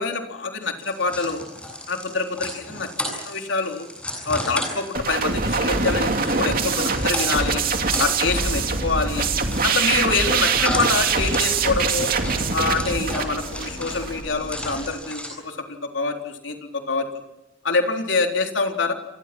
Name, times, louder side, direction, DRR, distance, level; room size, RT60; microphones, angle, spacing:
voice 1, 0.0-1.4 1.9-2.9 3.3-3.9 4.2-7.6 8.0-9.3 9.6-12.1 12.5-15.6 15.9-16.6 16.9-17.0 17.6-18.9, left 3 dB, 70° left, 4 dB, 3.7 m, -25 dB
sound 1, 0.8-15.3, left 1 dB, 5° left, 8.0 m, -34 dB
sound 2, 4.9-14.2, right 4 dB, 45° right, 2.7 m, -23 dB
sound 3, 7.3-14.9, left 1 dB, 25° left, 3.1 m, -39 dB
29.5 x 26.5 x 6.1 m, 0.96 s
head